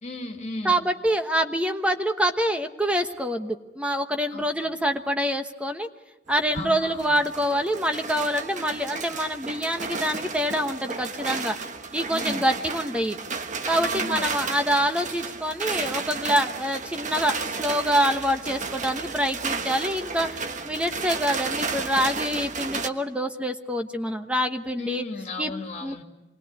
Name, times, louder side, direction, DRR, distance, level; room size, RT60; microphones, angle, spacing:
voice 1, 0.0-0.9 4.3-4.7 6.5-7.1 12.1-12.5 13.8-14.3 24.8-26.0, left 2 dB, 40° left, 4 dB, 2.7 m, -35 dB
voice 2, 0.6-5.9 6.3-11.6 11.9-13.2 13.7-25.0 25.4-25.5 25.8-26.0, equal, 5° right, 6 dB, 1.1 m, -26 dB
sound 1, 6.3-22.9, right 4 dB, 45° right, 1.3 m, -33 dB
26.5 x 21.0 x 8.4 m, 1.0 s
head